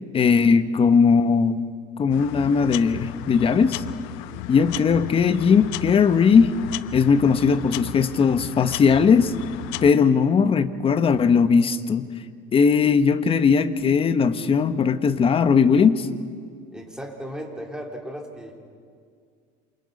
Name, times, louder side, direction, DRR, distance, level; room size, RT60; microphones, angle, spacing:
voice 1, 0.1-1.7 2.0-3.8 4.5-6.6 6.9-9.3 9.8-12.1 12.5-16.1, left 6 dB, 30° left, 11 dB, 1.2 m, -19 dB
sound 1, 2.1-9.9, left 15 dB, 80° left, 0.9 m, -35 dB
voice 2, 4.3-4.7 16.7-18.6, equal, 5° right, 1 dB, 3.4 m, -36 dB
28.5 x 27.5 x 5.4 m, 2.1 s
cardioid pair, 125°, 19 cm